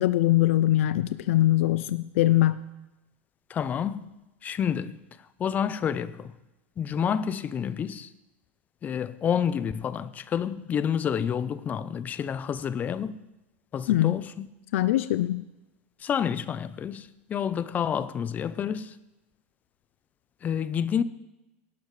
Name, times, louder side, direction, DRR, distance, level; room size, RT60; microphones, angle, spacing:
voice 1, 0.0-2.6 13.9-14.2 14.7-15.4, left 15 dB, 75° left, 0.4 m, -22 dB
voice 2, 3.5-4.1 4.4-5.0 5.4-6.3 6.8-8.1 8.8-13.2 13.7-14.5 16.0-18.9 20.4-21.0, left 8 dB, 25° left, 0.5 m, -29 dB
18.5 x 12.0 x 3.2 m
supercardioid pair, 140°, 7 cm